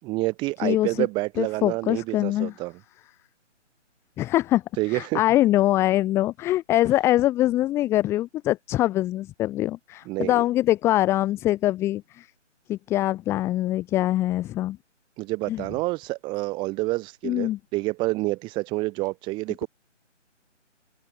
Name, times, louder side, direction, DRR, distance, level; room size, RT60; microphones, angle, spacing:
voice 1, 0.0-2.7 4.8-5.2 10.1-10.4 15.2-19.7, right 21 dB, 10° right, 7.3 m, -28 dB
voice 2, 0.6-1.1 1.4-2.5 4.2-4.6 4.9-12.3 12.7-14.8 15.5-15.6 17.2-17.6, left 14 dB, 5° left, 1.8 m, -23 dB
open air
figure-of-eight pair, 160°, 37 cm